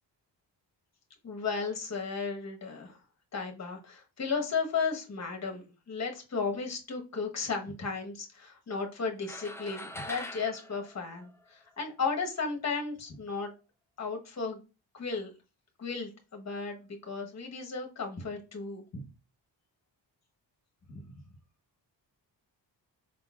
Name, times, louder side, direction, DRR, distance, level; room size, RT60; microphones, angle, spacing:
voice 1, 1.2-3.0 3.3-13.5 14.0-14.6 14.9-15.3 15.8-19.1 20.9-21.0, left 4 dB, 35° left, 3 dB, 1.1 m, -34 dB
sound 1, 9.2-11.8, left 1 dB, 5° left, 0.4 m, -43 dB
5.1 x 3.8 x 2.3 m, 0.30 s
wide cardioid pair, 120°, 44 cm